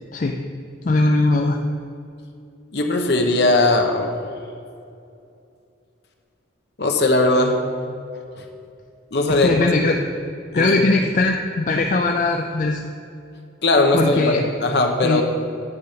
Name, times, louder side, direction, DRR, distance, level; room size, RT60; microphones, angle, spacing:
voice 1, 0.8-1.6 9.3-10.0 10.5-12.8 13.9-14.4 15.0-15.2, left 2 dB, 40° left, 3 dB, 0.4 m, -20 dB
voice 2, 2.7-4.1 6.8-7.6 9.1-9.7 10.5-10.8 13.6-15.2, left 2 dB, 55° left, 4 dB, 1.0 m, -19 dB
9.5 x 5.8 x 5.1 m, 2.5 s
head